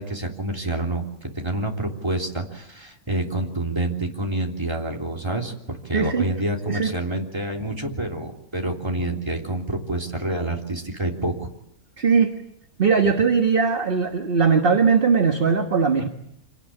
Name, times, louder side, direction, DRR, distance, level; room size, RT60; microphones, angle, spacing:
voice 1, 0.0-11.5, right 1 dB, 15° right, 0 dB, 3.4 m, -28 dB
voice 2, 5.9-6.2 6.7-6.9 12.0-12.3 12.8-16.1, right 5 dB, 40° right, 4 dB, 1.6 m, -19 dB
26.5 x 18.5 x 8.8 m, 0.79 s
omnidirectional pair, 1.6 m